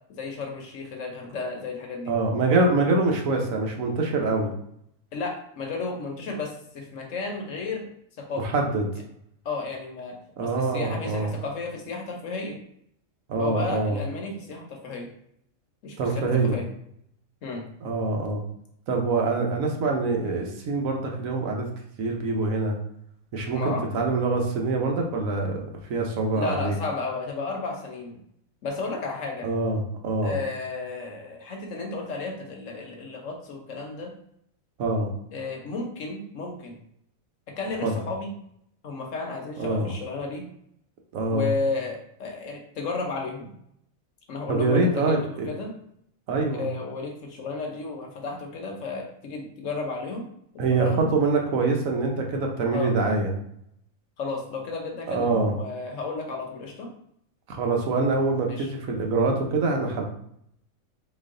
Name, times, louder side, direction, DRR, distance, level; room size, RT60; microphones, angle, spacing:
voice 1, 0.1-2.1 5.1-7.9 8.2-8.4 9.4-10.1 10.4-12.6 13.4-15.1 15.8-16.7 17.4-17.6 23.5-23.9 26.3-28.2 28.6-29.5 30.2-34.1 35.3-36.8 37.6-38.3 38.8-40.5 41.3-43.5 44.3-45.7 46.5-50.3 50.7-51.1 52.7-52.9 54.2-56.9 58.5-58.7, left 3 dB, 65° left, 2 dB, 1.1 m, -33 dB
voice 2, 2.1-4.5 8.4-8.8 10.4-11.3 13.3-14.0 16.0-16.6 17.8-18.4 18.9-21.7 22.0-22.8 23.3-25.6 25.9-26.8 29.4-30.4 34.8-35.1 37.8-37.9 39.6-39.9 41.1-41.5 44.5-45.5 46.3-46.7 50.6-53.4 55.1-55.5 57.5-60.0, right 3 dB, 75° right, 1 dB, 1.2 m, -25 dB
4.1 x 3.0 x 3.7 m, 0.71 s
omnidirectional pair, 1.5 m